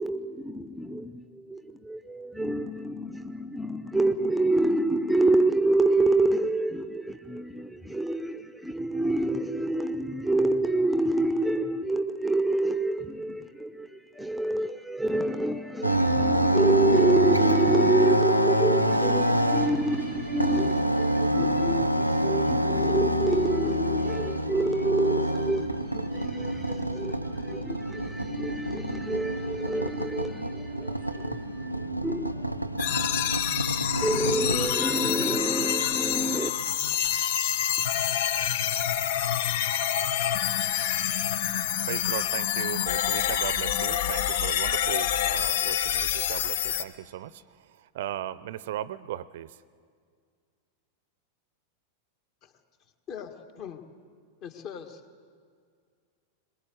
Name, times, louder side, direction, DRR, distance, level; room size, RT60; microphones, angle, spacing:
voice 1, 0.0-32.5 34.0-36.5, right 2 dB, ahead, 0.8 m, -27 dB
sound 1, 15.8-34.7, right 1 dB, 90° left, 0.8 m, -26 dB
sound 2, 32.8-46.8, left 10 dB, 55° left, 0.9 m, -27 dB
voice 2, 41.8-47.3 47.9-49.5, right 12 dB, 55° right, 0.6 m, -36 dB
voice 3, 53.1-53.8 54.4-55.0, left 7 dB, 40° left, 1.8 m, -40 dB
22.0 x 20.5 x 7.9 m
figure-of-eight pair, 90°, 0 cm